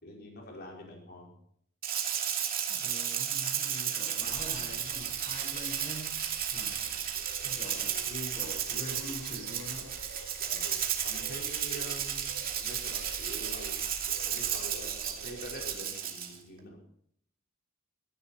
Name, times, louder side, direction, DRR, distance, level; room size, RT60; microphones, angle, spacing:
voice 1, 0.0-1.3 10.4-10.7 11.0-13.9 14.2-16.8, equal, 45° left, -1 dB, 5.0 m, -46 dB
Rattle (instrument), 1.8-16.4, right 9 dB, 45° right, 2.5 m, -33 dB
voice 2, 2.7-6.2 6.5-6.9 7.4-9.9, left 1 dB, 30° left, -2 dB, 5.4 m, -44 dB
sound 1, 4.2-15.8, right 2 dB, 90° right, 3.2 m, -48 dB
17.5 x 15.5 x 4.5 m, 0.66 s
head